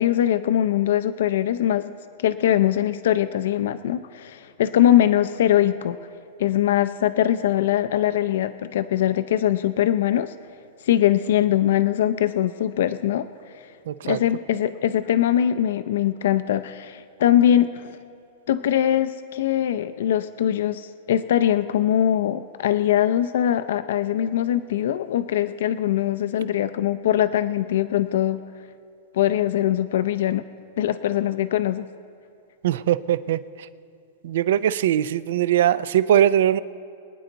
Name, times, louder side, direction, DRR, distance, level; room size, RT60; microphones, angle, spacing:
voice 1, 0.0-1.9 2.2-6.0 6.4-10.3 10.8-13.3 14.0-18.0 18.5-28.4 29.1-30.4 30.8-31.9, left 11 dB, 75° left, 11 dB, 0.5 m, -22 dB
voice 2, 13.9-14.2 32.6-33.4 34.2-36.6, right 11 dB, 70° right, 16 dB, 0.5 m, -20 dB
25.0 x 9.4 x 3.9 m, 2.6 s
supercardioid pair, 150°, 0 cm